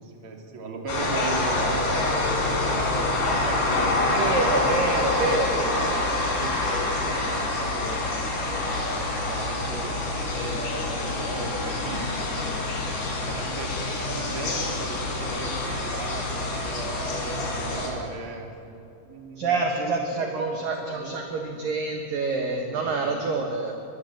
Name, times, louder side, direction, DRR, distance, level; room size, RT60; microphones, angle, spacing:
voice 1, 0.0-2.9 3.4-5.4 6.2-8.0 8.8-12.1 13.2-18.5 19.0-20.6 20.8-21.8 22.7-23.3, right 3 dB, 35° right, 1 dB, 2.9 m, -37 dB
sound 1, 0.9-17.9, left 2 dB, 60° left, 6.4 m, -26 dB
voice 2, 4.1-5.7 19.4-23.7, right 3 dB, 60° right, 2 dB, 2.7 m, -27 dB
23.0 x 22.5 x 7.8 m, 2.7 s
omnidirectional pair, 5.3 m